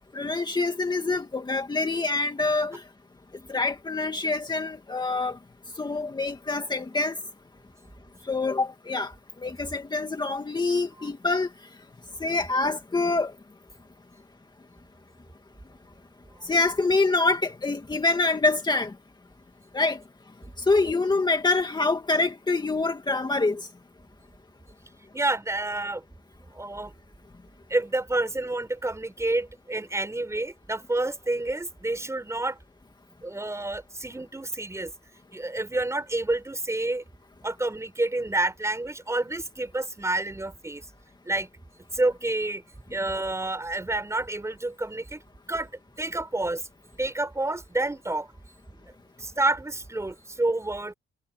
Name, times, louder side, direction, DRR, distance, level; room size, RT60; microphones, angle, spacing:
voice 1, 0.1-2.8 3.5-5.4 5.8-7.2 8.3-9.1 9.4-11.5 12.2-13.3 16.4-18.9 19.7-20.0 20.7-23.6, left 3 dB, 20° left, 2.1 m, -25 dB
voice 2, 25.1-26.0 26.5-26.9 27.7-32.6 33.2-34.9 35.3-37.0 37.4-40.8 41.2-41.5 41.9-42.6 42.9-45.2 45.5-45.7 46.0-46.7 47.0-48.3 49.2-50.9, right 2 dB, 15° right, 5.0 m, -29 dB
cardioid pair, 90°, 20 cm